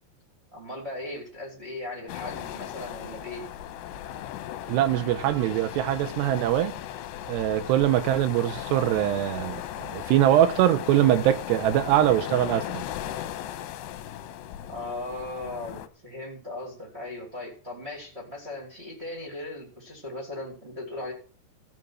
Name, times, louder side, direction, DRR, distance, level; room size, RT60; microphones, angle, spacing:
voice 1, 0.5-3.4 14.7-21.1, left 2 dB, 20° right, 2.0 m, -38 dB
sound 1, 2.1-15.9, left 11 dB, 80° left, 2.8 m, -37 dB
voice 2, 4.7-6.7 7.3-12.8, right 12 dB, 80° right, 2.7 m, -23 dB
15.5 x 5.4 x 6.2 m
omnidirectional pair, 5.3 m